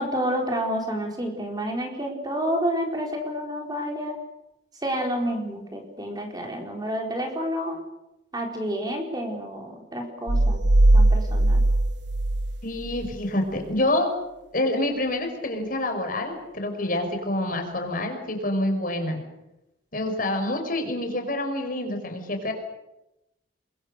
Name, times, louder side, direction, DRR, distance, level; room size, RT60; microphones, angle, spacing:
voice 1, 0.0-4.1 4.8-7.8 8.3-10.6 10.9-11.6, equal, 20° right, 2 dB, 4.2 m, -29 dB
sound 1, 10.3-13.1, right 1 dB, 70° right, 1.0 m, -20 dB
voice 2, 12.6-14.1 14.5-19.2 19.9-22.5, left 1 dB, 45° left, 5 dB, 5.2 m, -27 dB
29.5 x 22.5 x 6.6 m, 0.91 s
head